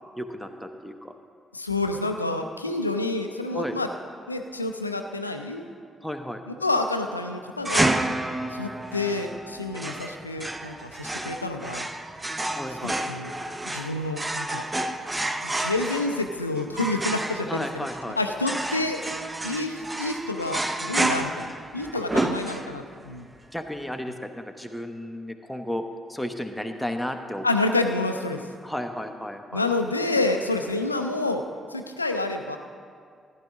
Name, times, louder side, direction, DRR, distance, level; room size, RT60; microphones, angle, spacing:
voice 1, 0.2-1.1 3.5-3.8 6.0-6.4 12.5-13.0 17.5-18.2 21.9-22.1 23.5-25.8 26.1-27.5 28.6-29.6, equal, ahead, 5 dB, 1.0 m, -33 dB
voice 2, 1.5-3.9 4.3-5.7 6.5-8.0 8.5-11.9 12.8-13.3 13.7-14.6 15.4-17.9 18.2-19.0 19.4-23.3 27.4-28.4 29.5-31.4 31.7-32.6, left 2 dB, 90° left, 6 dB, 0.4 m, -28 dB
sound 1, 7.6-23.0, right 1 dB, 20° right, 0.7 m, -30 dB
14.5 x 10.5 x 3.7 m, 2.1 s
figure-of-eight pair, 40°, 0 cm